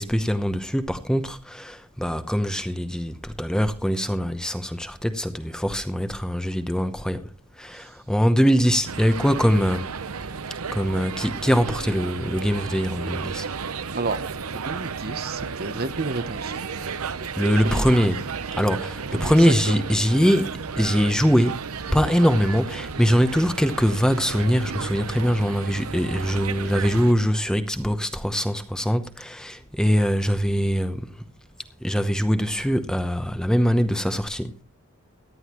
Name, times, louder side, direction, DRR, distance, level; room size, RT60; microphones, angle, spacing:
voice 1, 0.0-7.3 7.6-10.0 10.7-13.5 17.4-18.3 18.6-21.6 21.9-31.2 31.8-34.6, equal, 5° left, 0.8 m, -22 dB
sound 1, 8.8-27.1, right 5 dB, 80° right, 0.8 m, -33 dB
voice 2, 14.5-16.6 17.2-17.3 17.6-18.0 19.1-19.8, right 3 dB, 45° right, 0.9 m, -31 dB
17.5 x 11.0 x 3.0 m
head